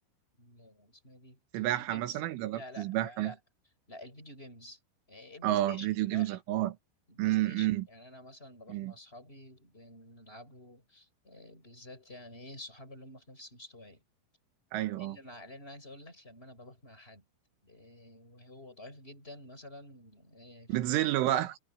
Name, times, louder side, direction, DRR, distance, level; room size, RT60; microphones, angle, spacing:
voice 1, 0.4-2.2 2.5-3.4 3.9-4.8 5.1-6.4 7.1-14.0 15.0-17.2 17.6-20.9 21.3-21.4, left 1 dB, 10° left, 5.6 m, -50 dB
voice 2, 1.5-3.3 5.4-6.8 7.2-7.8 8.7-8.9 14.7-15.2 20.7-21.6, right 15 dB, 75° right, 3.6 m, -30 dB
omnidirectional pair, 5.9 m